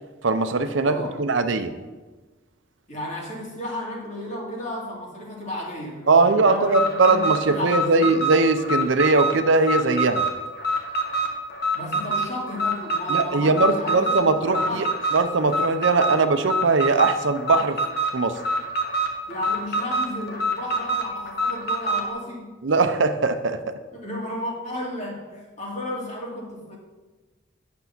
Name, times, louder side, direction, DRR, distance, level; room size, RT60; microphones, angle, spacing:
voice 1, 0.2-1.7 6.1-10.2 13.1-14.9 15.1-17.8 18.1-18.4 22.6-23.8, right 3 dB, 65° right, 9 dB, 0.6 m, -20 dB
voice 2, 0.8-1.2 2.9-8.1 11.7-14.9 19.3-22.5 23.9-26.8, left 1 dB, 35° left, -3 dB, 2.7 m, -33 dB
Alarm, 6.6-22.1, right 1 dB, 55° left, 1.4 m, -26 dB
9.5 x 6.9 x 5.9 m, 1.2 s
head